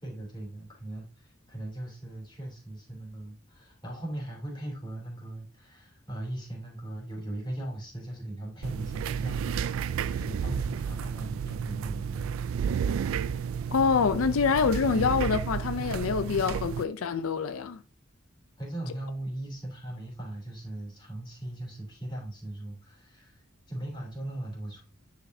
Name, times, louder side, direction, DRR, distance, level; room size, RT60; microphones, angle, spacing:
voice 1, 0.0-12.3 18.6-24.8, right 1 dB, 25° left, 3.0 m, -39 dB
sound 1, 8.6-16.8, right 7 dB, 75° right, 0.3 m, -32 dB
voice 2, 13.7-17.8, left 5 dB, 90° left, 0.5 m, -26 dB
9.8 x 5.1 x 2.7 m
head